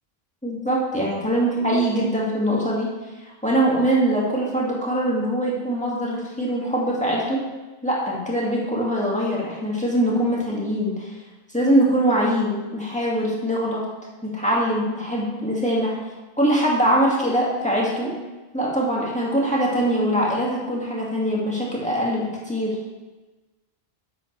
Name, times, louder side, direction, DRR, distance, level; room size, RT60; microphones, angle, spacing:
voice 1, 0.4-2.9 3.2-7.4 7.8-11.1 11.5-13.9 14.2-16.0 16.4-18.2 18.5-22.8, right 1 dB, 5° left, -5 dB, 2.0 m, -22 dB
10.5 x 7.7 x 3.3 m, 1.2 s
omnidirectional pair, 1.1 m